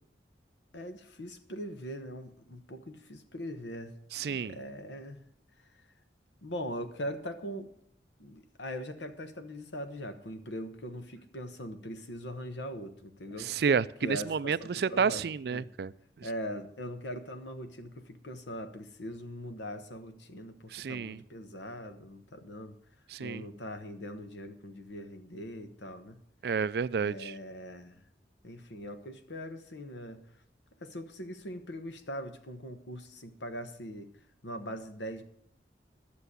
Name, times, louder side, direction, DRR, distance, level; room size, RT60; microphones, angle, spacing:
voice 1, 0.7-4.0 4.3-5.2 6.4-7.7 8.2-13.5 14.0-15.2 15.5-15.6 16.2-22.8 23.2-26.2 27.0-28.0 28.4-30.2 30.8-34.1 34.4-35.2, equal, 85° left, 8 dB, 1.3 m, -41 dB
voice 2, 4.1-4.6 13.4-15.9 16.2-16.3 20.7-21.2 23.1-23.4 26.4-27.3, right 6 dB, 60° right, 17 dB, 0.4 m, -30 dB
11.5 x 6.9 x 8.1 m, 0.68 s
head